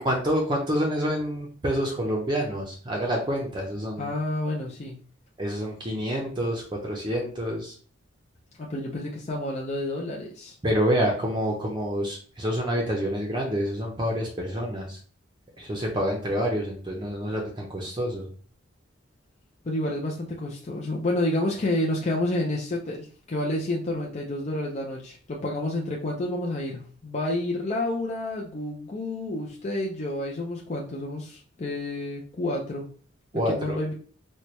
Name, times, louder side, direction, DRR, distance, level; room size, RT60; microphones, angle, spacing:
voice 1, 0.0-4.1 5.4-7.7 10.6-15.0 15.6-18.2 33.3-33.8, equal, 25° right, -1 dB, 0.6 m, -27 dB
voice 2, 4.0-5.0 8.6-10.5 19.6-32.9 33.5-33.9, left 1 dB, 35° left, -2 dB, 0.5 m, -29 dB
4.3 x 2.2 x 3.1 m, 0.44 s
head